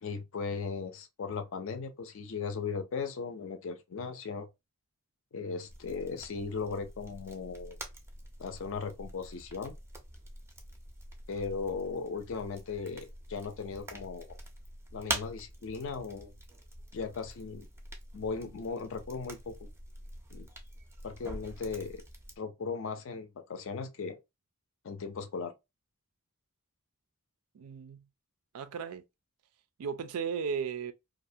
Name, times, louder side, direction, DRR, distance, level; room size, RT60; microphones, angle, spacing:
voice 1, 0.0-4.5 5.3-7.8 8.4-9.8 11.3-14.4 14.9-16.3 16.9-17.7 18.1-19.7 20.3-20.5 21.0-22.0 22.4-24.2 24.8-25.5, left 5 dB, 60° left, 0.4 m, -37 dB
sound 1, 5.7-22.4, right 1 dB, 10° right, 0.4 m, -45 dB
voice 2, 27.5-28.0 28.5-29.0 29.8-30.9, right 6 dB, 85° right, 0.4 m, -35 dB
2.4 x 2.1 x 2.6 m
head